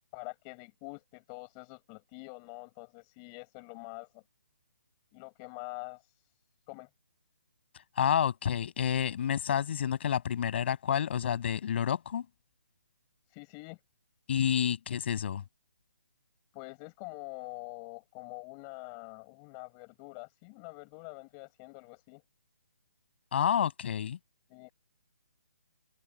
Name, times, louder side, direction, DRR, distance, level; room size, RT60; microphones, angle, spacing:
voice 1, 0.1-4.2 5.1-6.1 6.7-6.9 13.3-13.8 16.5-22.2 24.5-24.7, left 37 dB, 20° left, 5.8 m, -45 dB
voice 2, 8.0-12.3 14.3-15.4 23.3-24.2, left 9 dB, 45° left, 7.2 m, -29 dB
hypercardioid pair, 160°, 8 cm